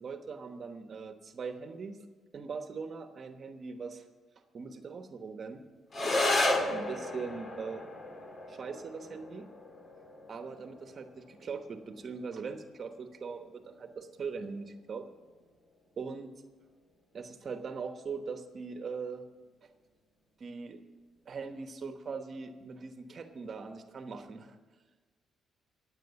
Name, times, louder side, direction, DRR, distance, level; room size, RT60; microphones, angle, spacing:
voice 1, 0.0-2.1 2.3-4.0 4.5-5.6 6.7-7.9 8.5-9.5 10.3-15.1 16.0-16.3 17.1-19.2 19.6-19.7 20.4-20.8 21.3-24.6, right 5 dB, 50° right, 7 dB, 1.1 m, -41 dB
sound 1, 5.9-14.9, left 2 dB, 40° left, 2.1 m, -35 dB
15.0 x 8.9 x 7.0 m, 1.4 s
cardioid pair, 90°, 0 cm